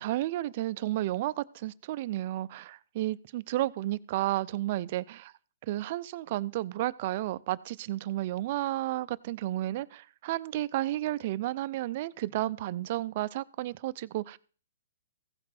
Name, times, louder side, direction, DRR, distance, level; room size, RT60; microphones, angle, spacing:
voice 1, 0.0-5.3 5.7-14.4, right 15 dB, 40° right, 0.5 m, -32 dB
15.5 x 5.3 x 5.8 m
hypercardioid pair, 160°, 0 cm